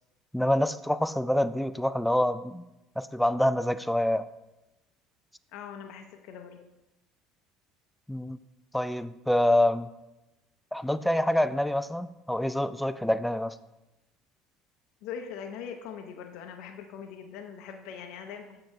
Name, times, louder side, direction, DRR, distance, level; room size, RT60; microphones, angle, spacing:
voice 1, 0.3-2.6 3.0-4.3 8.1-8.4 8.7-9.9 10.7-13.6, left 1 dB, 5° left, 13 dB, 0.3 m, -26 dB
voice 2, 5.5-6.6 15.0-18.6, left 7 dB, 70° left, 5 dB, 0.6 m, -41 dB
7.5 x 3.8 x 4.6 m, 0.97 s
hypercardioid pair, 75°, 0 cm